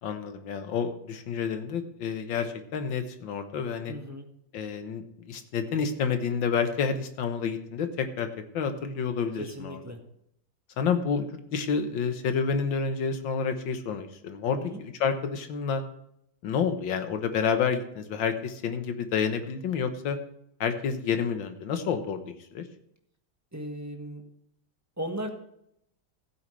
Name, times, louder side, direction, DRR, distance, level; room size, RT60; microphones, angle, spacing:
voice 1, 0.0-3.9 4.5-8.3 8.5-9.8 10.8-15.8 16.4-20.2 20.6-22.7, left 6 dB, 85° left, 7 dB, 1.9 m, -29 dB
voice 2, 3.9-4.3 9.4-10.0 14.6-14.8 23.5-24.2 25.0-25.3, right 1 dB, 10° right, 3 dB, 1.3 m, -36 dB
15.5 x 8.8 x 3.3 m, 0.75 s
omnidirectional pair, 2.0 m